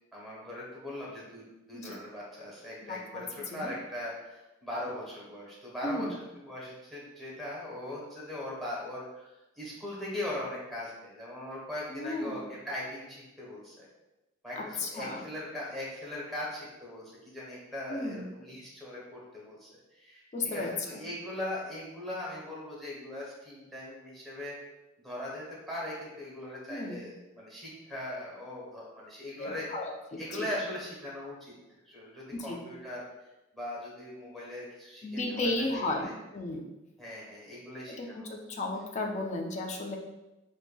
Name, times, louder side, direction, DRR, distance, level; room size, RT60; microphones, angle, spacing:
voice 1, 0.1-6.1 6.4-13.9 14.4-24.5 25.0-29.7 30.2-31.5 31.9-36.1 37.0-38.4, left 1 dB, ahead, -6 dB, 0.9 m, -40 dB
voice 2, 2.8-3.2 3.5-3.7 5.8-6.2 11.9-12.5 14.6-15.2 17.9-18.3 20.3-21.0 26.7-27.0 29.4-30.5 32.4-32.6 35.0-36.7 37.9-40.0, left 2 dB, 35° left, 2 dB, 0.4 m, -34 dB
4.5 x 2.6 x 2.2 m, 1.0 s
head